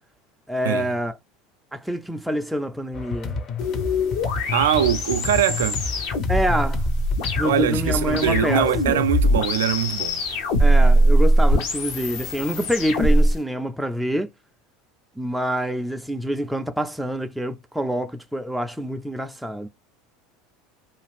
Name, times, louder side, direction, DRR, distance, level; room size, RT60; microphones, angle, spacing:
voice 1, 0.5-1.2 1.7-3.4 6.3-6.9 7.4-9.0 10.6-14.3 15.2-19.7, equal, ahead, 0.3 m, -26 dB
sound 1, 2.9-8.9, left 4 dB, 40° left, 0.6 m, -30 dB
sound 2, 3.6-13.3, equal, 75° left, 0.9 m, -21 dB
voice 2, 4.5-5.8 7.4-10.2, right 10 dB, 90° right, 0.3 m, -22 dB
2.4 x 2.4 x 3.3 m
supercardioid pair, 105°, 0 cm